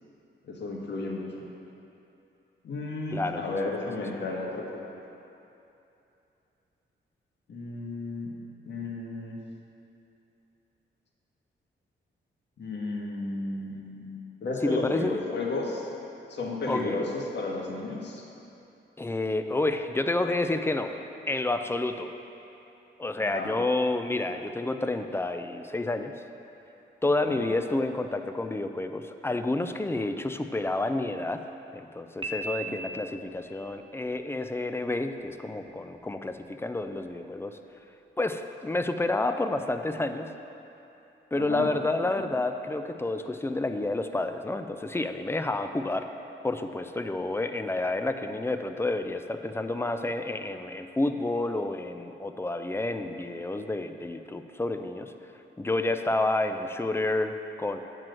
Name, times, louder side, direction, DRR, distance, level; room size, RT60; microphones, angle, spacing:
voice 1, 0.4-1.3 2.6-4.9 7.5-8.3 8.6-9.4 12.6-15.9 16.3-18.3 23.2-23.5 27.3-27.4 32.6-32.8 41.3-41.7, left 3 dB, 60° left, -2 dB, 1.5 m, -33 dB
voice 2, 3.1-3.4 3.8-3.9 14.6-15.2 16.7-17.1 19.0-20.9 21.3-22.1 23.0-26.1 27.0-31.4 31.7-37.6 38.2-40.3 41.3-46.1 46.4-55.1 55.6-57.8, left 2 dB, 10° left, 7 dB, 0.4 m, -29 dB
Piano, 32.2-33.3, right 2 dB, 25° right, 0.9 m, -36 dB
9.2 x 4.6 x 7.6 m, 2.8 s
cardioid pair, 100°, 20 cm